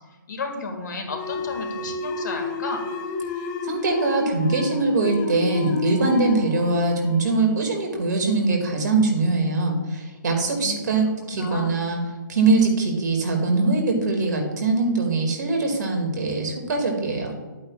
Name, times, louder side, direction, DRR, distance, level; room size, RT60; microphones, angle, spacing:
voice 1, 0.3-2.8 10.6-11.8, left 3 dB, 65° left, 3 dB, 2.1 m, -33 dB
sound 1, 1.1-8.3, left 5 dB, 25° left, 0.9 m, -31 dB
voice 2, 3.6-12.0 12.3-17.3, right 3 dB, 65° right, 2 dB, 2.3 m, -22 dB
11.5 x 8.5 x 2.4 m, 1.2 s
hypercardioid pair, 145°, 11 cm